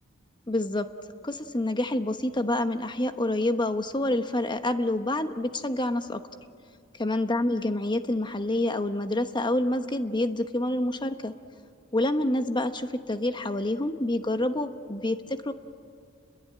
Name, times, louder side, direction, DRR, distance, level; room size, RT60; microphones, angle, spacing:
voice 1, 0.5-0.9 1.2-6.2 6.9-11.3 11.9-15.5, left 1 dB, 20° left, 8 dB, 1.1 m, -27 dB
30.0 x 22.0 x 8.7 m, 2.2 s
head